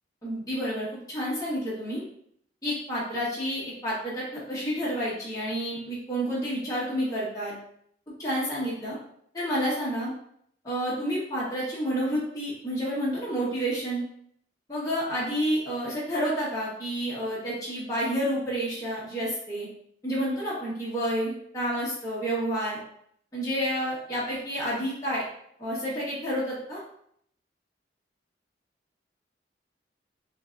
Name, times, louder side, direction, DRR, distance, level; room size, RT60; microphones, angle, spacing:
voice 1, 0.2-2.0 2.6-7.5 8.2-9.0 9.3-10.1 10.6-14.0 14.7-19.7 20.0-22.8 23.3-25.2 25.6-26.8, equal, 20° left, -8 dB, 1.4 m, -29 dB
5.7 x 2.8 x 2.5 m, 0.68 s
head